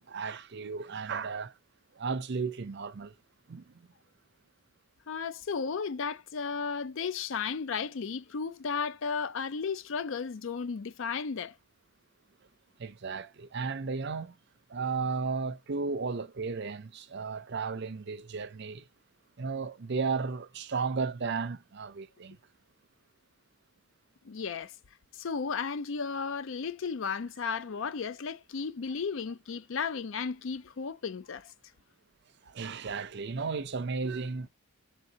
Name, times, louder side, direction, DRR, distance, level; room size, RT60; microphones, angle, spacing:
voice 1, 0.0-1.5 2.0-3.1 3.5-3.9 12.8-14.3 14.7-18.9 19.4-22.4 32.4-34.5, right 4 dB, 50° right, 0.5 m, -34 dB
voice 2, 5.1-11.5 24.2-24.7 25.1-31.5, left 5 dB, 60° left, 0.4 m, -34 dB
3.8 x 3.6 x 2.8 m
head